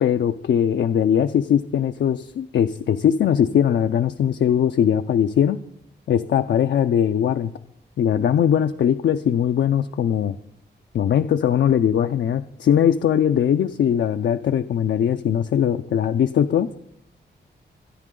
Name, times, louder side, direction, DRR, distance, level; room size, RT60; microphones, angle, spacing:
voice 1, 0.0-5.6 6.1-7.5 8.0-10.4 10.9-16.7, left 9 dB, 75° left, 8 dB, 0.5 m, -20 dB
24.5 x 10.0 x 3.8 m, 0.74 s
wide cardioid pair, 155°, 19 cm